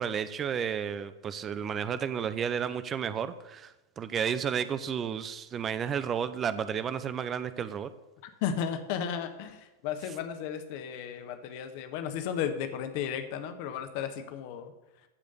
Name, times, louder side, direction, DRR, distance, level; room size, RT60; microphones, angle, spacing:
voice 1, 0.0-7.9, right 7 dB, 25° right, 13 dB, 0.6 m, -32 dB
voice 2, 8.4-14.7, left 8 dB, 45° left, 8 dB, 1.3 m, -34 dB
14.5 x 5.1 x 6.9 m, 1.0 s
figure-of-eight pair, 90°, 0 cm